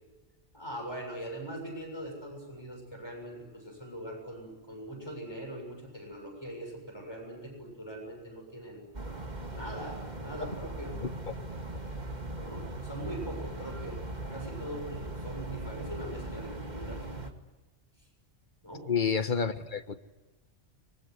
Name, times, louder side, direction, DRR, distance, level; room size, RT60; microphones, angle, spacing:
voice 1, 0.5-8.8 9.5-11.0 12.4-14.0 14.3-17.0 18.6-18.8, right 1 dB, 20° left, 2 dB, 6.9 m, -41 dB
sound 1, 8.9-17.3, right 2 dB, 35° right, 2.2 m, -39 dB
voice 2, 18.9-19.9, left 6 dB, 40° left, 9 dB, 1.5 m, -29 dB
25.0 x 22.5 x 9.7 m, 1.1 s
omnidirectional pair, 1.3 m